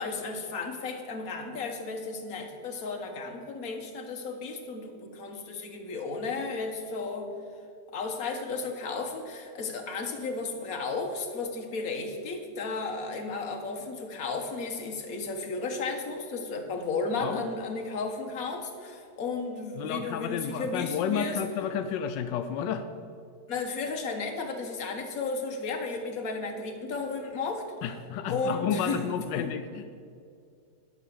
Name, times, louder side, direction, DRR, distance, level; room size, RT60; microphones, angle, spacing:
voice 1, 0.0-7.3 7.9-21.4 23.5-27.7 28.3-29.0 29.3-29.5, left 4 dB, 55° left, 3 dB, 1.6 m, -34 dB
voice 2, 19.8-22.8 27.8-29.9, left 7 dB, 85° left, 8 dB, 1.3 m, -31 dB
11.0 x 6.3 x 6.9 m, 2.4 s
omnidirectional pair, 1.9 m